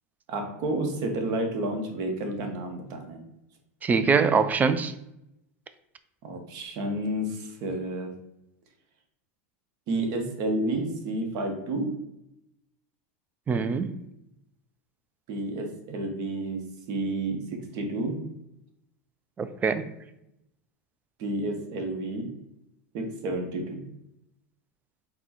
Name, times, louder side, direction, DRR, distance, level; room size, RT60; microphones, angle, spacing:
voice 1, 0.3-3.2 6.2-8.1 9.9-11.9 15.3-16.6 16.9-18.2 21.2-22.3 22.9-23.8, right 1 dB, 55° right, 3 dB, 1.0 m, -30 dB
voice 2, 3.8-4.9 13.5-14.0 19.4-19.9, right 5 dB, 20° right, 11 dB, 0.3 m, -23 dB
4.2 x 2.2 x 4.2 m, 0.84 s
hypercardioid pair, 110°, 8 cm